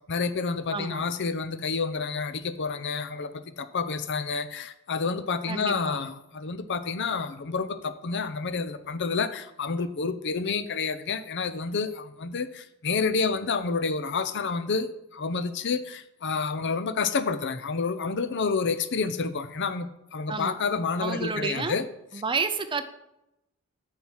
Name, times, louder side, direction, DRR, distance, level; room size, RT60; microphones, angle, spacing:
voice 1, 0.1-21.9, left 4 dB, 55° left, 12 dB, 0.6 m, -29 dB
voice 2, 0.7-1.0 5.5-6.0 20.3-20.6 21.0-21.7 22.1-22.8, right 4 dB, 20° right, 10 dB, 0.6 m, -30 dB
9.5 x 4.5 x 7.3 m, 0.85 s
head